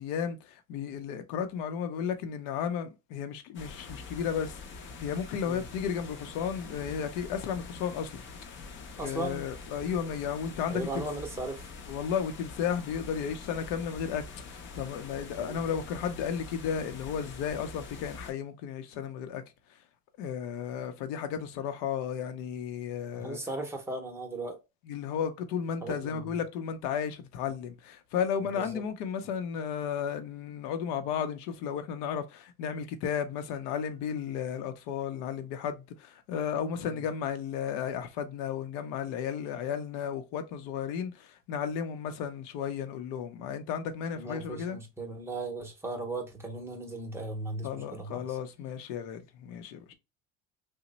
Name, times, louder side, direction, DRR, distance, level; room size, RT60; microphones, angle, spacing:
voice 1, 0.0-8.2 9.0-11.1 11.9-19.4 19.7-19.8 20.2-23.4 24.9-44.8 47.6-49.9, left 7 dB, 75° left, 0.7 m, -34 dB
sound 1, 3.5-18.3, left 4 dB, 35° left, 0.6 m, -45 dB
voice 2, 9.0-9.4 10.7-11.7 15.4-15.6 23.1-24.6 25.8-26.3 28.6-28.8 36.8-37.0 44.2-48.2, right 2 dB, 10° right, 0.7 m, -37 dB
2.9 x 2.1 x 3.9 m
cardioid pair, 135°, 34 cm